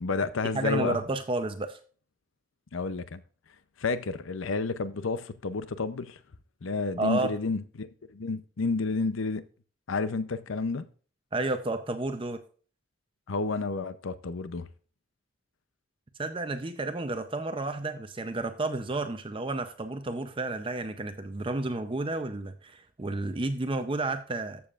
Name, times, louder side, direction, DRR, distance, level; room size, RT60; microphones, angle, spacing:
voice 1, 0.0-1.0 2.7-3.2 3.8-6.2 6.6-9.4 9.9-10.9 13.3-14.7, left 4 dB, 75° left, 0.6 m, -30 dB
voice 2, 0.5-1.8 7.0-7.3 11.3-12.4 16.2-24.6, right 2 dB, 25° right, 0.6 m, -31 dB
14.0 x 7.1 x 2.4 m
head